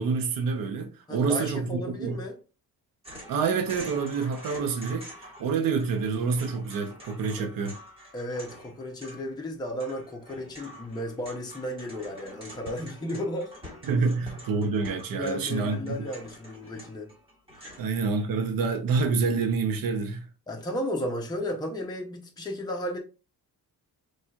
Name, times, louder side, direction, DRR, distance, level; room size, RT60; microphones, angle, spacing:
voice 1, 0.0-2.2 3.3-7.7 13.8-16.1 17.8-20.3, right 5 dB, 65° right, 0.8 m, -27 dB
voice 2, 1.1-2.4 7.4-7.5 8.1-13.5 15.1-17.1 17.6-17.8 20.5-23.0, left 1 dB, 10° left, 0.6 m, -34 dB
sound 1, 3.0-5.5 5.7-17.8, equal, 15° right, 1.3 m, -47 dB
4.3 x 3.2 x 2.3 m
cardioid pair, 155°, 38 cm